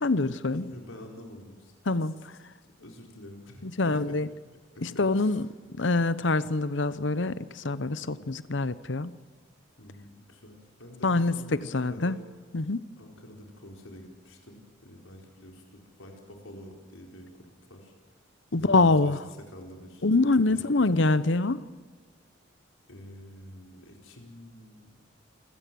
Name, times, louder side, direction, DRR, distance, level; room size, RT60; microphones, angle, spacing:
voice 1, 0.0-0.6 1.9-2.1 3.6-4.3 4.8-5.5 5.8-9.1 11.0-12.2 12.5-12.8 18.5-19.2 20.0-21.6, left 3 dB, 65° left, 16 dB, 0.9 m, -25 dB
voice 2, 0.5-1.7 2.2-2.3 2.6-4.2 4.7-5.4 9.8-12.2 13.0-17.9 18.5-19.2 19.5-21.1 22.9-25.0, left 1 dB, 90° left, 1 dB, 4.6 m, -47 dB
27.0 x 16.5 x 7.7 m, 1.5 s
head